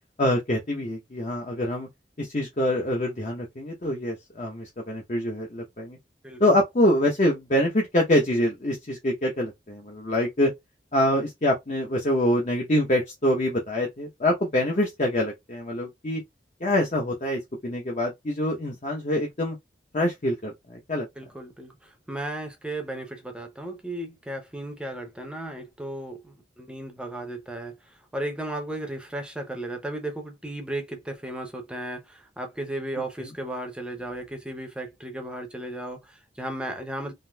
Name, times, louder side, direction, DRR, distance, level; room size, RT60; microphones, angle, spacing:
voice 1, 0.2-1.9 2.2-6.0 6.4-10.5 10.9-16.2 16.6-19.6 19.9-21.1, left 1 dB, 40° left, 0.8 m, -25 dB
voice 2, 6.2-6.6 21.2-37.1, right 1 dB, 5° right, 0.6 m, -35 dB
3.7 x 2.6 x 2.3 m
head